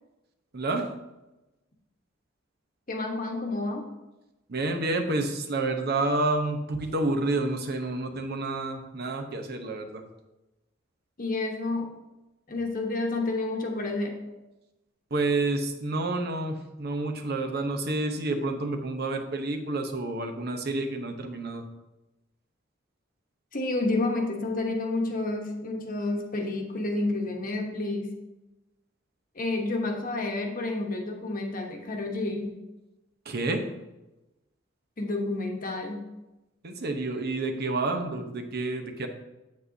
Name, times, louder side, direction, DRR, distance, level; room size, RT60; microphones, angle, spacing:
voice 1, 0.5-0.9 4.5-10.0 15.1-21.7 33.3-33.7 36.6-39.1, right 2 dB, 55° right, 5 dB, 0.8 m, -29 dB
voice 2, 2.9-3.9 11.2-11.9 12.5-14.2 23.5-28.1 29.3-32.6 35.0-36.1, left 2 dB, 45° left, 2 dB, 1.1 m, -30 dB
8.4 x 8.1 x 2.7 m, 1.0 s
head